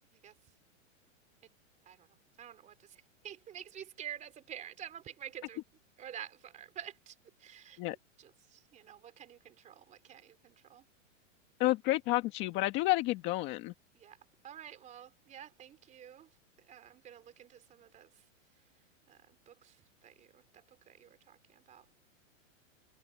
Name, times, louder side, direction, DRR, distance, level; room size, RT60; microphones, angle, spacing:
voice 1, 2.4-2.7 3.2-5.6 6.0-7.1 7.4-7.8 8.2-10.8 14.0-14.2 14.4-16.3 16.7-18.1 19.1-19.7 20.0-22.1, right 10 dB, 20° right, 3.6 m, -49 dB
voice 2, 11.6-13.7, left 18 dB, 30° left, 1.6 m, -30 dB
supercardioid pair, 160°, 39 cm